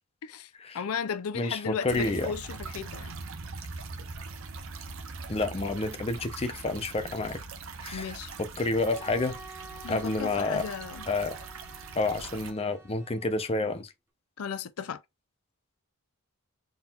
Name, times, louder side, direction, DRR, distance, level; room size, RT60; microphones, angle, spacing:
voice 1, 0.2-3.2 7.9-8.3 9.8-11.0 14.4-15.0, left 7 dB, 80° left, 0.4 m, -35 dB
voice 2, 1.3-2.3 5.3-7.4 7.8-8.1 8.4-9.4 9.9-10.6 11.1-11.3 11.9-13.9, left 2 dB, 25° left, 0.6 m, -29 dB
sound 1, 1.9-12.5, right 4 dB, 65° right, 0.9 m, -42 dB
Bowed string instrument, 8.7-13.6, right 3 dB, 10° right, 0.8 m, -49 dB
4.2 x 3.8 x 2.4 m
head